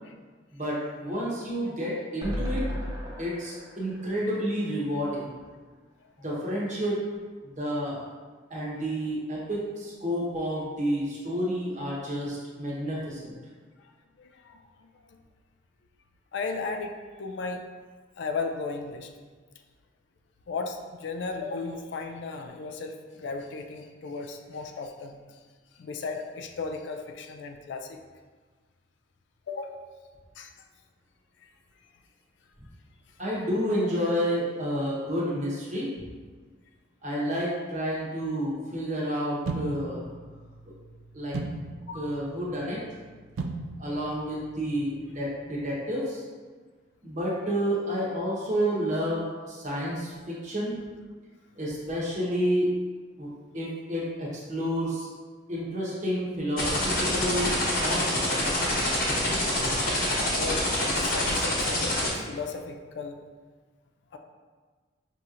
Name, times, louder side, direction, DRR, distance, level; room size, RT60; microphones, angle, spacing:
voice 1, 0.5-2.6 3.2-5.3 6.2-7.0 7.4-8.0 8.5-13.4 33.2-35.9 37.0-40.0 41.1-41.4 41.9-42.8 43.8-46.2 47.0-50.8 51.6-52.7 53.2-53.3 53.5-55.1 55.5-58.6, equal, 35° right, -6 dB, 1.0 m, -30 dB
sound 1, 2.2-5.4 5.8-5.9 6.1-6.2, equal, 20° right, 0.6 m, -36 dB
voice 2, 14.2-15.2 16.3-17.6 18.2-19.1 20.5-25.4 25.7-28.0 29.5-29.9 30.4-30.5 31.4-31.5 31.8-31.9 41.9-42.1 60.4-63.2 64.1-64.2, left 4 dB, 60° left, 4 dB, 0.3 m, -36 dB
sound 2, 39.5-45.5, right 3 dB, 80° right, 0.3 m, -39 dB
sound 3, 56.6-62.1, left 1 dB, 45° left, 1.0 m, -26 dB
5.5 x 2.8 x 2.5 m, 1.4 s
head